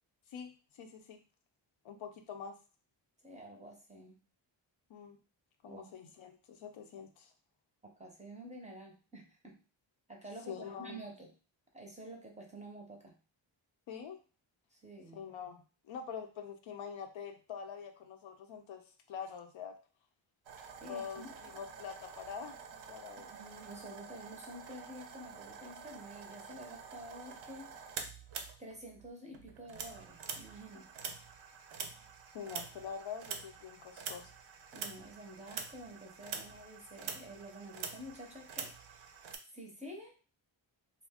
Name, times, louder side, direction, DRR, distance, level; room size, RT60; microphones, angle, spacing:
voice 1, 0.3-1.2 1.8-2.5 4.9-5.2 5.6-7.3 10.5-11.0 13.9-14.2 15.1-18.8 19.1-19.7 20.9-22.6 22.9-23.3 32.3-34.3, left 7 dB, 70° left, 5 dB, 0.6 m, -45 dB
voice 2, 3.2-4.2 5.6-6.1 7.8-9.6 10.1-11.3 11.7-13.2 14.7-15.2 20.8-21.3 23.2-27.7 28.6-30.9 34.7-39.1 39.5-40.1, right 1 dB, 15° right, 0 dB, 0.6 m, -49 dB
sound 1, 20.5-29.1 29.3-39.4, right 6 dB, 75° right, 0.6 m, -47 dB
2.4 x 2.2 x 3.4 m, 0.35 s
wide cardioid pair, 115°, 48 cm